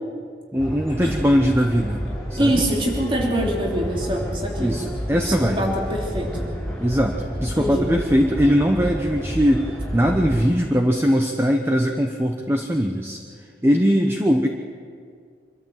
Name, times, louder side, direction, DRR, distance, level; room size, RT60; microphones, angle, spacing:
sound 1, 0.5-10.5, equal, ahead, 5.8 m, -30 dB
voice 1, 0.5-2.0 2.3-2.6 4.6-5.8 6.8-13.2 13.6-14.5, equal, 15° right, 3 dB, 0.9 m, -20 dB
voice 2, 2.4-4.8 5.1-6.5 7.5-7.9, right 1 dB, 30° right, -2 dB, 3.1 m, -24 dB
25.5 x 13.0 x 7.8 m, 2.1 s
head